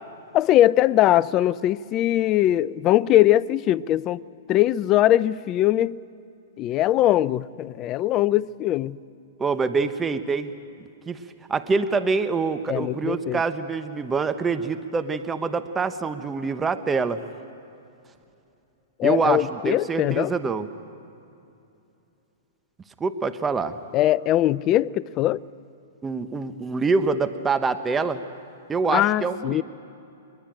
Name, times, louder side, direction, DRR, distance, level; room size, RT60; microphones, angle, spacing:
voice 1, 0.3-4.2 4.5-6.0 6.6-9.0 12.7-13.4 19.0-20.3 23.9-25.4 28.9-29.6, left 13 dB, 35° left, 0.5 m, -21 dB
voice 2, 9.4-10.5 11.1-11.2 11.5-17.2 19.0-20.7 23.0-23.8 26.0-28.2 28.7-29.6, right 4 dB, 15° right, 0.9 m, -25 dB
23.0 x 21.0 x 9.0 m
hypercardioid pair, 125°, 0 cm